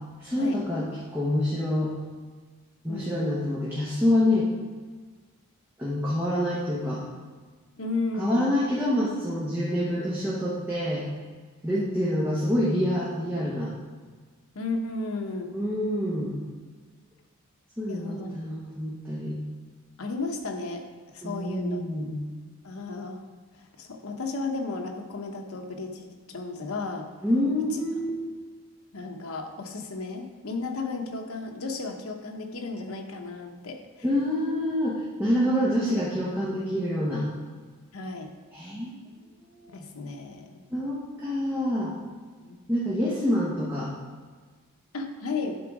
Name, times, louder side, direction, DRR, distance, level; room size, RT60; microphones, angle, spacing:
voice 1, 0.2-1.9 2.8-4.5 5.8-7.0 8.2-11.0 11.6-13.7 15.5-16.4 17.8-19.4 21.2-22.2 27.2-28.1 34.0-37.3 38.5-39.0 39.6-39.8 40.7-41.9 42.7-43.9, left 1 dB, 10° right, -7 dB, 1.1 m, -27 dB
voice 2, 2.9-3.3 7.8-8.5 11.7-12.4 14.5-15.5 17.9-18.3 20.0-20.9 21.1-21.8 22.6-23.2 23.5-27.1 27.7-27.8 28.9-33.8 37.9-38.3 39.7-40.6 42.4-42.6 44.9-45.6, left 3 dB, 75° left, 3 dB, 0.9 m, -34 dB
11.0 x 3.9 x 4.9 m, 1.5 s
head